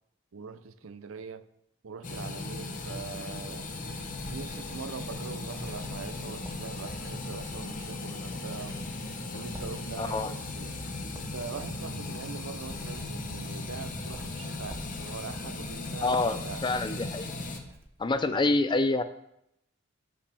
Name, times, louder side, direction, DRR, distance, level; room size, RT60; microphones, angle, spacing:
voice 1, 0.3-1.4 1.8-3.7 4.3-8.8 9.3-10.8 11.1-16.7 18.3-18.7, right 5 dB, 75° right, 0.5 m, -42 dB
sound 1, 2.0-17.6, left 2 dB, 40° left, 0.9 m, -37 dB
Writing, 3.0-18.3, right 1 dB, 10° right, 0.7 m, -51 dB
voice 2, 10.0-10.3 16.0-17.3 18.0-19.0, left 2 dB, 20° left, 0.4 m, -27 dB
13.5 x 5.3 x 3.4 m
head